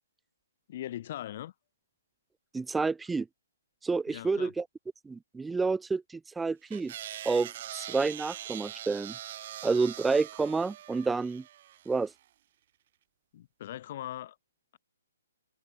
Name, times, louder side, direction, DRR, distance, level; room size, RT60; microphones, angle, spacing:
voice 1, 0.7-1.5 4.1-4.5 13.3-14.4, left 12 dB, 40° left, 0.8 m, -40 dB
voice 2, 2.5-3.3 3.8-4.6 5.1-6.0 6.4-6.9 7.3-9.2 9.6-11.4 11.9-12.1, right 4 dB, 5° right, 0.4 m, -29 dB
sound 1, 6.7-12.1, right 12 dB, 40° right, 3.0 m, -43 dB
hypercardioid pair, 160°, 0 cm